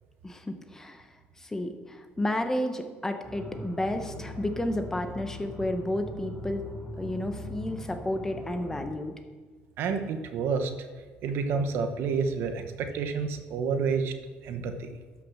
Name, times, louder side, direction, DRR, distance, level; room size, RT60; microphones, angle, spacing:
voice 1, 0.2-1.1 1.4-6.7 7.0-9.1 14.6-14.7, left 1 dB, 10° left, 6 dB, 1.0 m, -32 dB
sound 1, 3.2-8.8, equal, 25° right, 2.8 m, -41 dB
voice 2, 9.8-10.7 11.2-14.1 14.4-14.9, right 5 dB, 65° right, 7 dB, 1.1 m, -29 dB
12.0 x 6.1 x 6.4 m, 1.4 s
cardioid pair, 130°, 4 cm